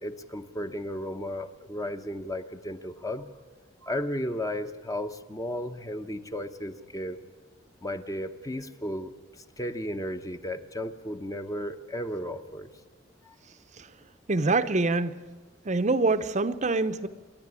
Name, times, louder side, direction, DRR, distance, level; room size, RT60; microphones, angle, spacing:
voice 1, 0.0-3.3 3.8-7.2 7.8-9.1 9.6-12.7 13.3-13.4, left 1 dB, 15° left, 8 dB, 0.9 m, -34 dB
voice 2, 14.3-15.2 15.6-17.1, right 3 dB, 35° right, 10 dB, 0.7 m, -25 dB
27.5 x 11.0 x 9.8 m, 1.4 s
head